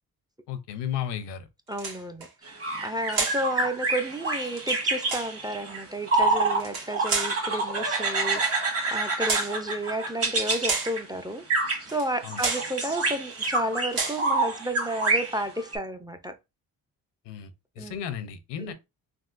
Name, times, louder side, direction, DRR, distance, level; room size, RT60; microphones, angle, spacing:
voice 1, 0.5-1.5 12.2-12.4 17.3-18.7, left 9 dB, 85° left, 0.6 m, -34 dB
voice 2, 1.7-16.4 17.8-18.0 18.6-18.7, right 1 dB, 10° right, 0.4 m, -32 dB
sound 1, 1.7-2.3 3.1-3.5 4.4-5.3 6.5-7.4 8.3-8.6 9.2-9.6 10.4-11.0 11.9-12.1 12.4-12.7 13.3-13.6 13.9-14.3, right 4 dB, 60° right, 1.3 m, -31 dB
sound 2, 2.5-6.6 6.9-11.0 11.5-11.9 12.2-15.8, right 3 dB, 35° right, 1.4 m, -27 dB
3.5 x 2.4 x 2.4 m
cardioid pair, 80°, 40 cm